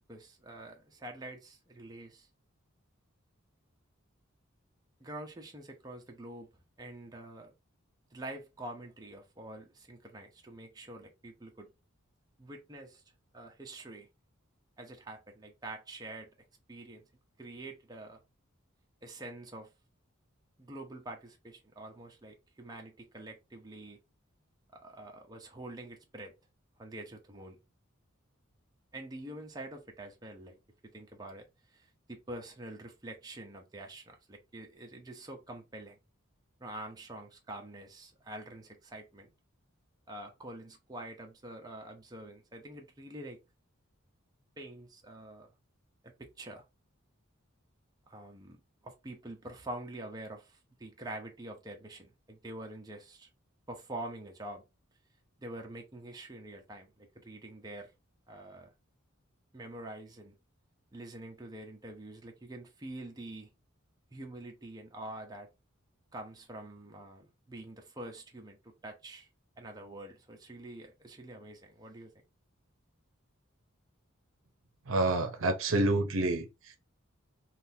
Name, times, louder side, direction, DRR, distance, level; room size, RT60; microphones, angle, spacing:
voice 1, 0.1-2.3 5.0-6.5 6.8-7.5 8.1-11.7 12.4-13.0 13.3-14.1 14.8-16.3 16.7-17.0 17.4-18.2 19.0-19.7 20.6-24.0 24.7-26.3 26.8-27.6 28.9-30.6 30.9-36.0 36.6-39.3 40.1-43.4 44.6-45.5 46.0-46.6 48.1-48.6 48.8-53.3 53.7-54.6 55.4-57.9 58.3-58.7 59.5-60.3 60.9-63.5 64.1-65.5 66.1-69.3 69.6-72.1, right 1 dB, 20° right, 0.6 m, -46 dB
voice 2, 74.9-76.8, right 2 dB, 65° right, 0.7 m, -28 dB
3.7 x 2.4 x 2.7 m
head